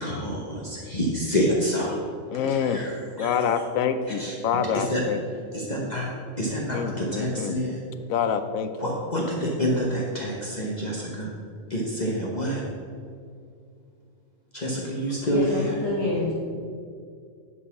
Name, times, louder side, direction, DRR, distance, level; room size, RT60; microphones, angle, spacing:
voice 1, 0.0-2.0 2.4-3.3 4.2-4.4 4.7-5.0 5.5-6.1 6.4-7.8 8.8-11.3 11.7-12.6 14.5-15.8, equal, 35° left, -4 dB, 1.2 m, -27 dB
voice 2, 2.3-2.9 3.2-5.2 6.7-7.6 8.1-8.7, left 7 dB, 80° left, 9 dB, 1.0 m, -26 dB
voice 3, 15.3-16.3, left 2 dB, 20° left, -9 dB, 1.4 m, -27 dB
10.0 x 4.1 x 5.8 m, 2.3 s
omnidirectional pair, 1.4 m